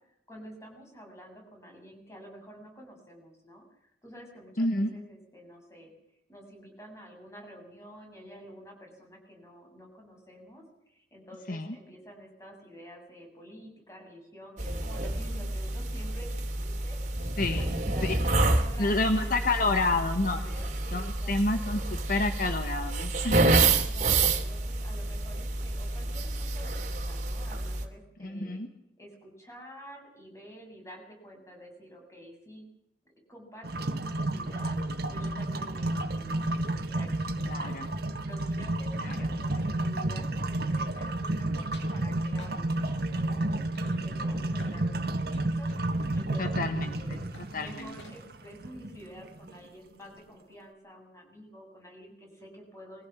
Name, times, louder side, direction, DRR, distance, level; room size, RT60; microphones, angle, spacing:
voice 1, 0.3-5.9 6.3-18.2 18.5-21.8 23.7-28.6 29.0-32.7 33.3-34.8 35.1-47.2 47.6-53.1, equal, 15° left, 1 dB, 7.4 m, -49 dB
voice 2, 4.6-4.9 11.5-11.7 17.4-17.7 18.0-18.2 18.8-20.4 20.9-21.8 22.1-23.6 28.2-28.7 37.4-37.9 39.0-39.2 46.4-47.0 47.5-47.9, left 2 dB, 50° left, 7 dB, 1.5 m, -29 dB
sound 1, 14.6-27.8, right 2 dB, 40° right, 2.7 m, -28 dB
sound 2, 33.6-49.6, right 2 dB, 60° right, 1.8 m, -31 dB
sound 3, 41.0-41.4 41.7-42.0 42.4-42.6 43.2-43.4 43.7-44.8 45.3-46.9 47.3-47.6 48.0-48.4, left 2 dB, 90° left, 5.5 m, -53 dB
23.0 x 16.0 x 7.5 m, 0.80 s
head